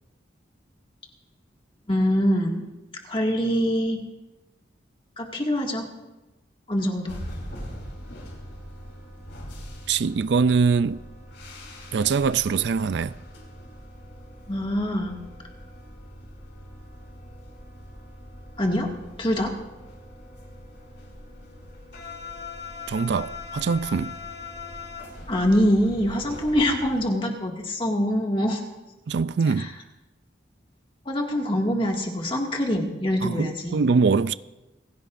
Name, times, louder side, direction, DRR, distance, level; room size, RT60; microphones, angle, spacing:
voice 1, 1.9-2.6 3.0-4.0 5.2-5.9 6.7-7.2 14.5-15.2 18.6-18.9 19.2-19.5 25.3-28.6 29.6-29.7 31.1-33.9, equal, 25° left, 2.0 m, -24 dB
sound 1, 7.1-27.0, left 2 dB, 80° left, 4.8 m, -41 dB
voice 2, 9.9-11.0 11.9-13.2 22.9-24.2 29.1-29.7 33.2-34.3, right 5 dB, 65° right, 0.4 m, -23 dB
27.0 x 16.0 x 2.6 m
head